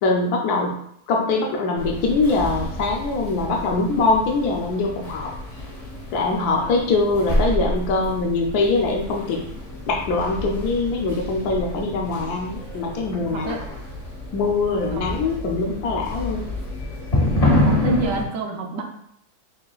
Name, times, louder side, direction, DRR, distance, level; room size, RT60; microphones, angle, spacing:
voice 1, 0.0-0.8 1.1-5.3 6.1-9.4 9.9-13.6 14.3-16.4, left 3 dB, 85° left, 1 dB, 1.1 m, -23 dB
sound 1, 1.8-18.2, left 1 dB, 40° left, 0.5 m, -28 dB
voice 2, 13.2-13.6 14.9-15.0 17.6-18.8, right 3 dB, 65° right, 2 dB, 1.0 m, -28 dB
6.2 x 2.2 x 2.4 m, 0.70 s
omnidirectional pair, 1.6 m